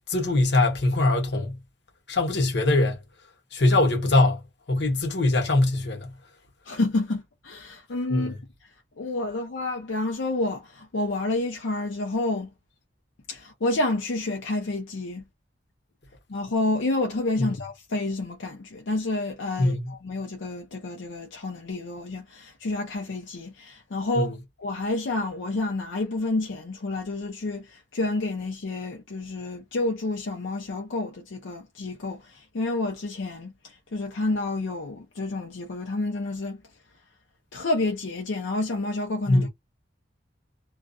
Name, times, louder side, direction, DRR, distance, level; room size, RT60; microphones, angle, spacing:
voice 1, 0.0-1.6 2.1-3.0 3.5-4.4 4.7-6.1 8.1-8.3 17.4-17.5 19.6-19.9 24.2-24.3 39.3-39.5, left 2 dB, 65° left, 1.0 m, -22 dB
voice 2, 6.7-8.3 9.0-12.5 13.3-15.2 16.3-36.6 37.5-39.5, left 2 dB, 85° left, 0.6 m, -29 dB
2.3 x 2.3 x 2.4 m
head